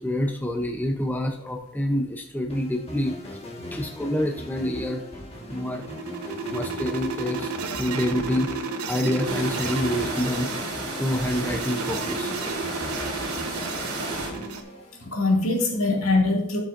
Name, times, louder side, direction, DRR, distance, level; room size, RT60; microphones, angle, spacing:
voice 1, 0.0-3.4 3.7-5.0 5.5-5.9 6.5-10.5 10.9-12.3, left 1 dB, 10° left, 2 dB, 0.7 m, -27 dB
sound 1, 2.5-15.4, left 1 dB, 30° left, 1.6 m, -39 dB
sound 2, 5.2-14.6, right 5 dB, 90° right, 0.9 m, -33 dB
sound 3, 9.2-14.3, right 2 dB, 70° right, 3.3 m, -33 dB
voice 2, 15.0-16.6, left 2 dB, 70° left, 0 dB, 2.3 m, -23 dB
12.5 x 6.2 x 2.6 m, 0.70 s
head